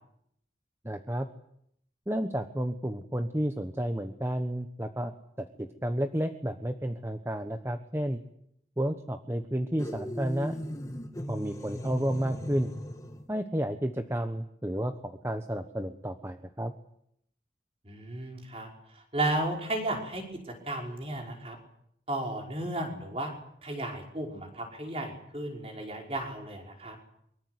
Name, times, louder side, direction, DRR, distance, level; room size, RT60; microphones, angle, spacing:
voice 1, 0.8-1.3 2.1-8.2 8.8-10.5 11.3-12.7 13.3-16.7, equal, 15° right, 8 dB, 1.2 m, -31 dB
sound 1, 9.8-13.3, equal, 20° left, 1.7 m, -38 dB
voice 2, 17.9-20.4 20.6-21.6 22.1-23.3 23.6-27.0, right 1 dB, 35° right, 2 dB, 5.4 m, -34 dB
24.0 x 23.5 x 8.2 m, 0.73 s
head